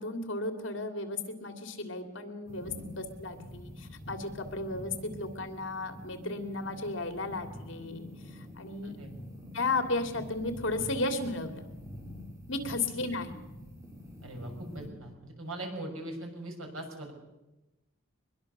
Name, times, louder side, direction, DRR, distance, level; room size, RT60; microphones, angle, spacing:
voice 1, 0.0-2.7 3.0-9.0 9.5-11.6 12.5-13.4, left 2 dB, 60° left, 6 dB, 2.8 m, -34 dB
sound 1, 2.5-14.9, left 1 dB, 15° right, 4.5 m, -46 dB
voice 2, 14.2-17.1, right 1 dB, 80° right, 3 dB, 6.3 m, -41 dB
23.0 x 21.5 x 6.8 m, 1.0 s
head